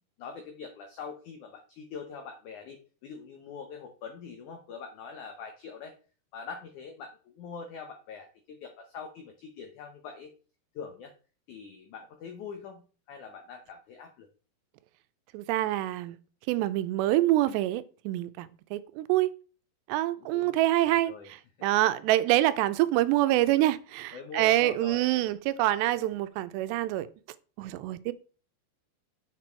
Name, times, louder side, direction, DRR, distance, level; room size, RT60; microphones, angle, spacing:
voice 1, 0.2-6.0 6.3-10.3 10.7-11.1 11.5-14.3 20.2-20.5 20.8-21.3 24.1-25.1, left 5 dB, 85° left, 1.7 m, -43 dB
voice 2, 15.3-16.2 16.5-19.3 19.9-21.1 21.6-27.1 27.6-28.1, right 15 dB, 85° right, 2.8 m, -26 dB
6.9 x 6.0 x 4.5 m
omnidirectional pair, 4.9 m